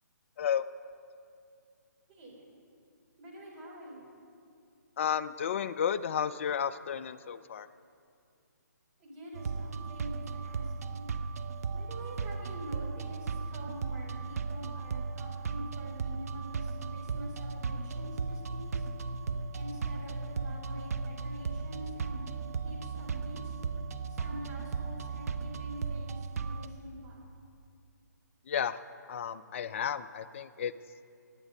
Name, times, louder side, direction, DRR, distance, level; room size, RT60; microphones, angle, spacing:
voice 1, 2.1-2.5 3.2-4.2 9.0-11.1 11.7-18.9 19.5-22.3 22.6-23.6 24.1-27.3, equal, 30° right, -3 dB, 3.5 m, -46 dB
voice 2, 5.0-7.7 28.5-28.8 29.1-30.7, left 8 dB, 40° left, 12 dB, 0.5 m, -32 dB
sound 1, 9.3-26.7, right 4 dB, 55° right, 0.7 m, -36 dB
19.0 x 8.2 x 5.4 m, 2.4 s
figure-of-eight pair, 145°, 10 cm